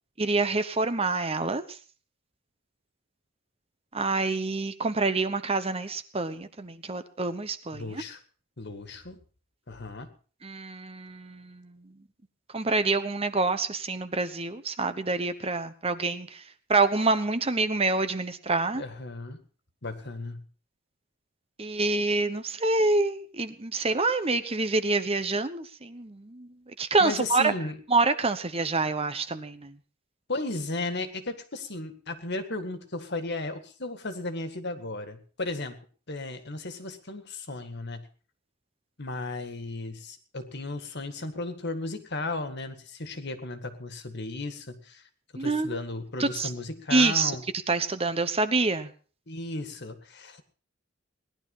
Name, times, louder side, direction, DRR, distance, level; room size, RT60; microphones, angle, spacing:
voice 1, 0.2-1.6 3.9-8.0 10.4-11.8 12.5-16.4 16.7-18.8 21.6-26.5 26.8-27.5 27.9-29.8 45.4-45.8 46.2-46.5 46.9-47.3 47.7-48.9, right 3 dB, 30° right, 11 dB, 1.0 m, -27 dB
voice 2, 7.7-8.2 8.6-9.2 9.7-10.1 18.7-19.4 19.8-20.4 27.0-27.8 30.3-35.8 36.1-38.1 39.0-45.0 45.4-47.4 49.3-50.4, left 2 dB, 55° left, 9 dB, 1.9 m, -35 dB
19.0 x 11.5 x 5.5 m, 0.40 s
head